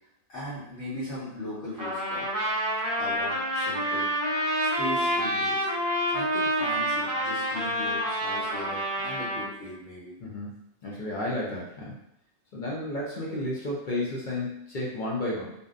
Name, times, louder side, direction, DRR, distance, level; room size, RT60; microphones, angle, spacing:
voice 1, 0.3-2.3 3.0-4.1 4.6-5.7 6.1-10.2, left 1 dB, 75° left, -10 dB, 1.2 m, -38 dB
Trumpet, 1.8-9.5, equal, 30° right, 0.4 m, -28 dB
voice 2, 10.2-11.9 12.5-15.5, left 1 dB, 55° left, -5 dB, 0.6 m, -32 dB
2.6 x 2.1 x 2.4 m, 0.79 s
omnidirectional pair, 1.2 m